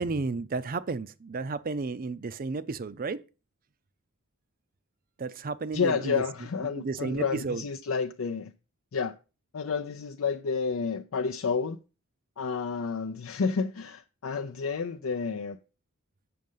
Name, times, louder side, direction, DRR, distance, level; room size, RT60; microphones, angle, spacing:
voice 1, 0.0-3.2 5.2-6.2 6.8-7.6, right 3 dB, 40° right, 0.5 m, -32 dB
voice 2, 5.7-8.5 8.9-9.2 9.5-11.8 12.4-15.6, left 5 dB, 65° left, 0.5 m, -30 dB
7.7 x 6.3 x 5.5 m
head